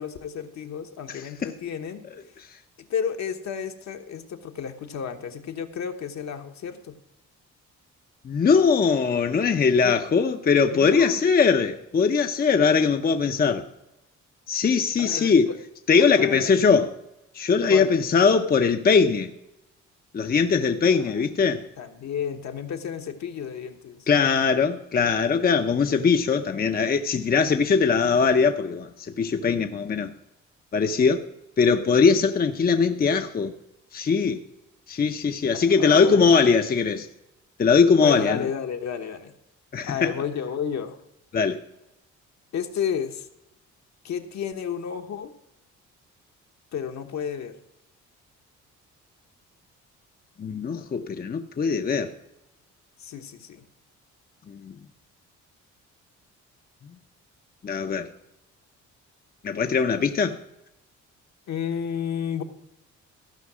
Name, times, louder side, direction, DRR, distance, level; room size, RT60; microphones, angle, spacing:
voice 1, 0.0-2.0 2.8-6.9 9.8-10.0 10.7-11.2 15.0-15.5 16.0-16.6 17.7-17.9 21.8-24.1 35.5-36.5 38.0-39.3 39.8-41.0 42.5-43.3 44.0-45.3 46.7-47.5 53.0-53.6 61.5-62.4, left 7 dB, 65° left, 1.2 m, -31 dB
voice 2, 1.1-1.5 8.2-13.6 14.5-15.5 15.9-16.9 17.3-19.3 20.1-21.7 24.1-30.1 30.7-31.3 31.6-33.5 33.9-34.4 34.9-37.1 37.6-38.5 39.7-40.1 41.3-41.6 50.4-52.1 54.5-54.8 57.6-58.1 59.4-60.4, left 5 dB, 30° left, 0.7 m, -21 dB
14.5 x 5.3 x 6.1 m
cardioid pair, 90°, 30 cm